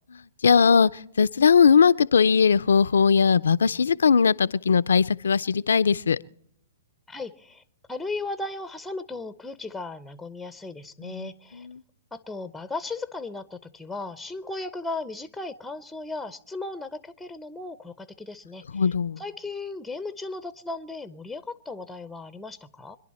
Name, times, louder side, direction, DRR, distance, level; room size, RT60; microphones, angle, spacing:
voice 1, 0.4-6.2 11.0-11.8 18.7-19.2, left 6 dB, 80° left, 0.5 m, -20 dB
voice 2, 7.1-7.6 7.9-11.7 12.1-18.8 19.2-23.0, left 3 dB, 5° left, 0.6 m, -36 dB
25.5 x 11.0 x 4.2 m
hypercardioid pair, 130°, 0 cm